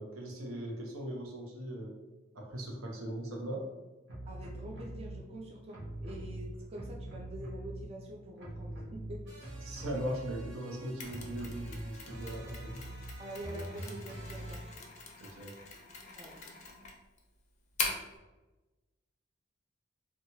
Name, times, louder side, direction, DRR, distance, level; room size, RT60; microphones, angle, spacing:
voice 1, 0.0-2.0 2.3-3.6 9.6-12.8 15.2-15.6, right 1 dB, 85° right, 0 dB, 0.6 m, -39 dB
sound 1, 4.1-5.2 5.7-8.1 8.4-14.7, right 1 dB, 55° right, 0.9 m, -43 dB
voice 2, 4.3-9.8 13.2-14.6 16.2-16.4, right 1 dB, 30° right, -1 dB, 0.3 m, -46 dB
Mechanisms, 11.0-18.2, left 4 dB, 35° left, 0.4 m, -42 dB
2.8 x 2.3 x 2.7 m, 1.1 s
head